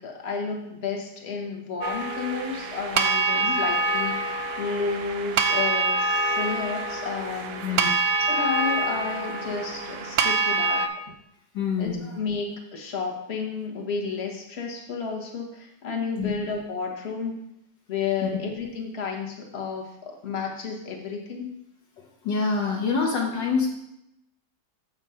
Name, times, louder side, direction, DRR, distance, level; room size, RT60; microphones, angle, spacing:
voice 1, 0.0-7.8 8.2-10.9 11.8-17.4 17.9-21.5, left 5 dB, 35° left, 1 dB, 1.2 m, -32 dB
sound 1, 1.8-10.9, right 3 dB, 80° right, 0.7 m, -26 dB
voice 2, 11.5-12.1 16.2-16.3 18.2-18.3 22.0-23.7, left 5 dB, 65° left, -1 dB, 1.6 m, -26 dB
7.3 x 4.9 x 5.5 m, 0.83 s
omnidirectional pair, 2.2 m